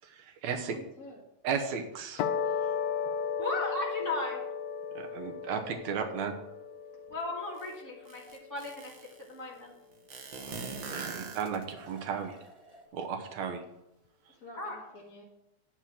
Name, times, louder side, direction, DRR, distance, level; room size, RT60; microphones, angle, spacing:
voice 1, 0.0-0.8 1.4-2.2 5.0-6.3 10.9-12.4 12.9-13.6, right 6 dB, 75° right, 5 dB, 2.4 m, -34 dB
voice 2, 0.5-1.2 14.3-15.2, left 1 dB, 40° left, -3 dB, 1.3 m, -49 dB
sound 1, 2.2-8.7, left 6 dB, 80° left, 2.0 m, -35 dB
voice 3, 3.4-4.4 7.1-8.2 8.5-9.7 14.6-14.7, left 2 dB, 10° right, -4 dB, 1.7 m, -36 dB
sound 2, 7.1-7.2 10.8-11.5 11.7-12.9, equal, 35° right, 0.5 m, -55 dB
sound 3, 7.6-7.7 8.1-9.2 10.1-11.9, right 5 dB, 55° right, 1.5 m, -41 dB
10.5 x 4.5 x 7.7 m, 0.85 s
omnidirectional pair, 3.3 m